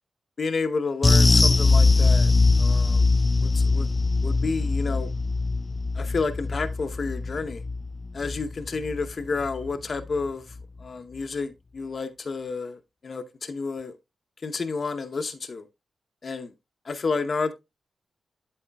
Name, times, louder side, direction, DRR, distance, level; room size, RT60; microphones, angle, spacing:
voice 1, 0.4-2.3 2.6-3.0 3.4-3.9 4.2-5.1 5.9-7.6 8.1-10.4 10.8-13.9 14.4-15.7 16.2-16.5 16.9-17.5, left 4 dB, 55° left, 0.8 m, -30 dB
sound 1, 1.0-9.7 10.0-10.2 10.6-10.7, left 3 dB, 35° left, 0.3 m, -22 dB
8.6 x 7.8 x 2.2 m
cardioid pair, 60°, 0 cm